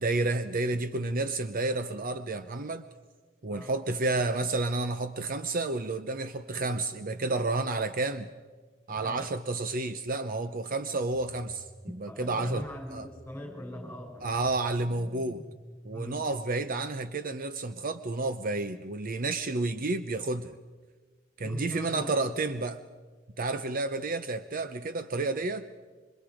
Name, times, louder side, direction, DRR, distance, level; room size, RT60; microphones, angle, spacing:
voice 1, 0.0-2.8 3.4-8.3 8.9-12.6 12.9-13.1 14.2-15.4 15.8-20.6 21.4-22.8 23.4-25.7, right 2 dB, 45° right, 10 dB, 0.7 m, -30 dB
voice 2, 8.9-9.2 12.1-14.4 15.9-16.2 21.4-22.1, equal, 10° left, 1 dB, 6.8 m, -41 dB
sound 1, 11.0-16.0, equal, 10° right, 0.8 m, -49 dB
27.5 x 24.5 x 5.0 m, 1.4 s
head